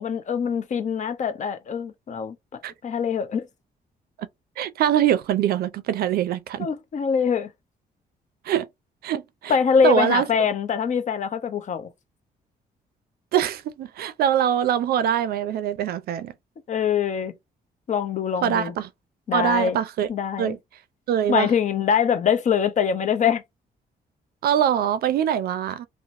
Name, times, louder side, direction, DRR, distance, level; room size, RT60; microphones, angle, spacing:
voice 1, 0.0-3.5 6.6-7.5 9.5-11.9 16.7-17.3 17.9-18.7 19.3-19.8 20.1-20.6 21.3-23.4, left 7 dB, 50° left, 0.5 m, -23 dB
voice 2, 4.6-6.7 8.5-8.7 9.0-9.5 9.8-10.3 13.3-16.3 18.4-18.9 19.3-20.1 20.4-20.6 21.1-21.5 24.4-25.9, right 10 dB, 75° right, 0.4 m, -23 dB
2.8 x 2.1 x 2.5 m
cardioid pair, 95°, 16 cm